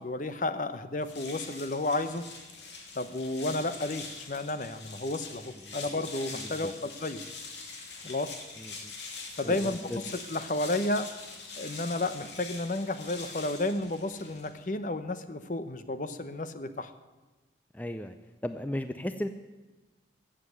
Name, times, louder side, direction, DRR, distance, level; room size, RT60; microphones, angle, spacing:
voice 1, 0.0-2.2 3.0-7.2 8.0-8.3 9.4-9.9 10.3-11.1 11.6-16.9, left 2 dB, 45° left, 11 dB, 0.8 m, -32 dB
sound 1, 1.0-14.7, left 4 dB, 80° left, 2.5 m, -44 dB
voice 2, 6.3-6.7 8.6-8.9 9.4-10.0 17.7-18.1 18.4-19.3, left 1 dB, 10° left, 9 dB, 0.5 m, -36 dB
14.5 x 7.7 x 9.0 m, 1.2 s
head